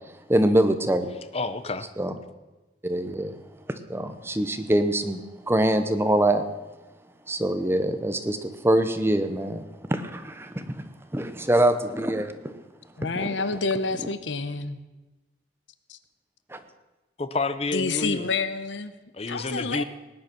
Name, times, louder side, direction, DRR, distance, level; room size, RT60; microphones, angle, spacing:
voice 1, 0.3-1.1 2.0-2.2 2.8-3.3 3.7-5.2 5.5-6.4 7.3-12.5 13.2-13.3 16.5-16.6, right 1 dB, 15° right, 9 dB, 0.8 m, -24 dB
voice 2, 1.3-1.9 17.2-18.3 19.1-19.8, left 3 dB, 35° left, 11 dB, 0.8 m, -29 dB
voice 3, 13.0-14.8 15.9-16.0 17.7-18.9 19.3-19.8, left 4 dB, 85° left, 12 dB, 0.9 m, -28 dB
18.5 x 9.6 x 6.0 m, 1.1 s
head